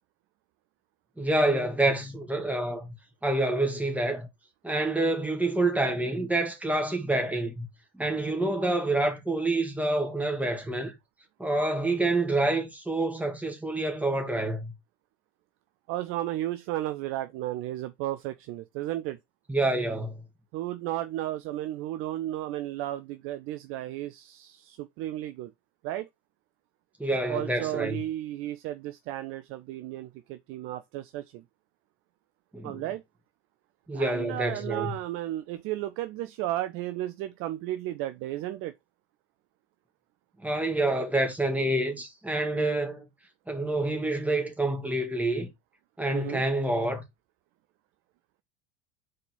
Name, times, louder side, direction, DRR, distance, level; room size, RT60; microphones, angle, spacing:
voice 1, 1.2-2.9 3.2-4.3 4.6-7.7 7.9-10.9 11.4-14.7 19.5-20.2 27.0-28.0 32.5-32.8 33.9-34.9 40.4-43.1 43.5-45.5 46.0-47.0, right 2 dB, 5° right, 1.9 m, -27 dB
voice 2, 15.9-19.2 20.5-25.5 25.8-26.1 27.3-31.4 32.6-33.0 33.9-38.7 46.1-46.4, right 14 dB, 40° right, 0.5 m, -34 dB
4.9 x 4.1 x 5.5 m
figure-of-eight pair, 70°, 35 cm